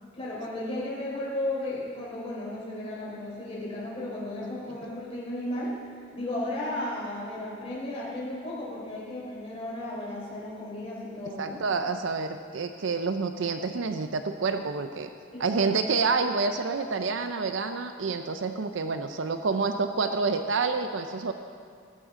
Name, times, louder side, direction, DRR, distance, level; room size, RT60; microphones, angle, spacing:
voice 1, 0.1-5.7 6.1-11.6 15.3-15.7, left 1 dB, 30° left, -7 dB, 3.7 m, -34 dB
voice 2, 11.4-15.1 15.4-21.3, right 4 dB, 70° right, 8 dB, 0.5 m, -28 dB
17.0 x 14.5 x 3.7 m, 2.2 s
head